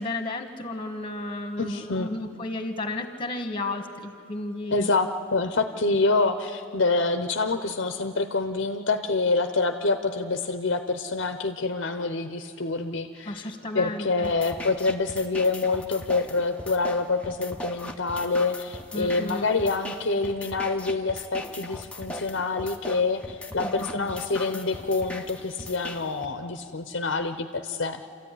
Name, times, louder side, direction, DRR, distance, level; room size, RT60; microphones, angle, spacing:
voice 1, 0.0-4.9 13.2-14.3 18.9-19.5 23.5-24.0 24.4-24.9, left 2 dB, 25° left, 7 dB, 1.6 m, -33 dB
voice 2, 1.6-2.1 4.7-28.0, left 3 dB, 60° left, 8 dB, 0.8 m, -26 dB
sound 1, 14.2-26.3, left 1 dB, 5° left, 0.9 m, -39 dB
28.0 x 14.0 x 9.9 m, 2.3 s
head